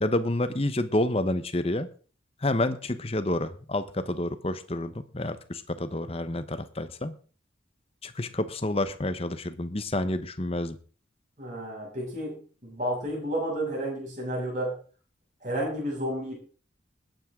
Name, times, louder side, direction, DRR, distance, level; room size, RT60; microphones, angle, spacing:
voice 1, 0.0-1.9 2.4-7.1 8.0-10.8, left 1 dB, 30° left, 11 dB, 1.0 m, -29 dB
voice 2, 11.4-14.8 15.4-16.4, right 1 dB, 40° right, -3 dB, 6.8 m, -31 dB
21.0 x 9.2 x 3.8 m, 0.39 s
head